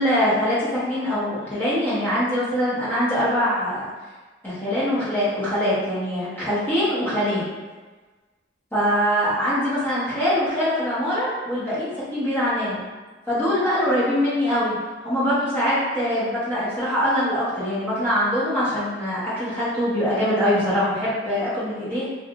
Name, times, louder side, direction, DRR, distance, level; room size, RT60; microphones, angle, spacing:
voice 1, 0.0-3.9 4.4-7.4 8.7-12.8 13.3-14.8 15.0-22.0, equal, 10° left, -12 dB, 0.8 m, -23 dB
2.8 x 2.3 x 2.3 m, 1.3 s
head